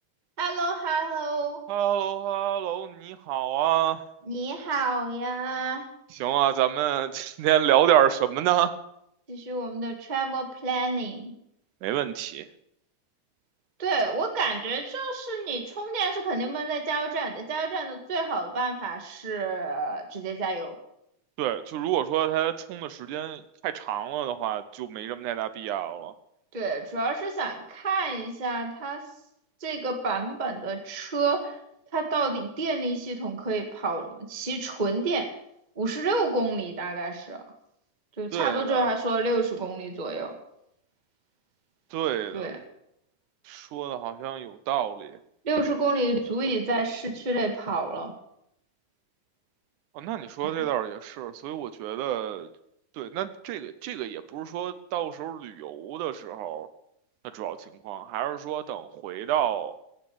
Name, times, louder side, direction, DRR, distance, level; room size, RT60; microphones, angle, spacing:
voice 1, 0.4-1.6 4.3-5.8 9.3-11.3 13.8-20.7 26.5-29.0 29.6-31.6 31.9-35.3 35.7-37.4 38.2-40.3 42.3-42.5 45.4-48.1 50.4-50.5, right 3 dB, 20° right, 4 dB, 1.4 m, -29 dB
voice 2, 1.7-4.1 6.1-8.7 11.8-12.5 21.4-26.1 38.3-38.9 41.9-42.5 43.5-45.2 49.9-52.5 52.9-56.7 57.2-59.8, right 11 dB, 90° right, 12 dB, 2.4 m, -28 dB
16.0 x 8.1 x 8.6 m, 0.77 s
omnidirectional pair, 3.4 m